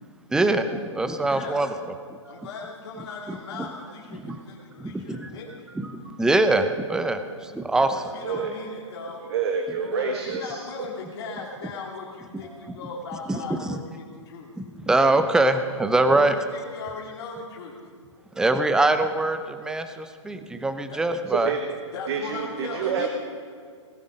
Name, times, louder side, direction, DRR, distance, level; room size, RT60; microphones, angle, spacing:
voice 1, 0.3-1.7 2.3-2.4 3.3-3.7 4.2-4.4 4.8-5.3 5.8-7.9 12.5-12.8 13.3-13.8 14.8-16.3 18.4-19.4 19.6-21.5, right 2 dB, 5° right, 9 dB, 0.7 m, -23 dB
voice 2, 1.3-1.6 2.3-5.7 7.7-9.2 9.8-14.5 16.2-17.8 20.9-21.0 21.9-23.1, left 4 dB, 55° left, -3 dB, 2.8 m, -38 dB
voice 3, 8.2-8.5 9.3-10.9 21.3-21.8 22.1-23.1, right 6 dB, 55° right, 4 dB, 1.4 m, -28 dB
19.0 x 12.5 x 5.2 m, 2.1 s
hypercardioid pair, 130°, 16 cm